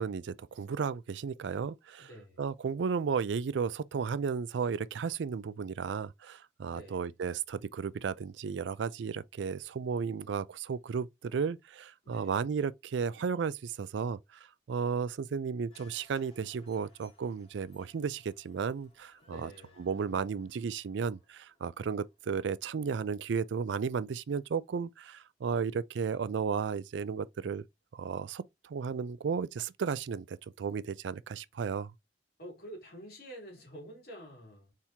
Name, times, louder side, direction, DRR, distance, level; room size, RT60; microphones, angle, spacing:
voice 1, 0.0-2.1 2.4-19.5 19.8-27.6 27.9-31.9, right 6 dB, 75° right, 0.4 m, -34 dB
voice 2, 2.0-2.4 6.7-7.1 12.0-12.5 19.3-19.8 32.4-34.7, equal, 55° left, 2.7 m, -48 dB
sound 1, 15.7-24.0 24.3-24.4, left 3 dB, 30° left, 2.0 m, -66 dB
4.3 x 3.6 x 2.8 m
head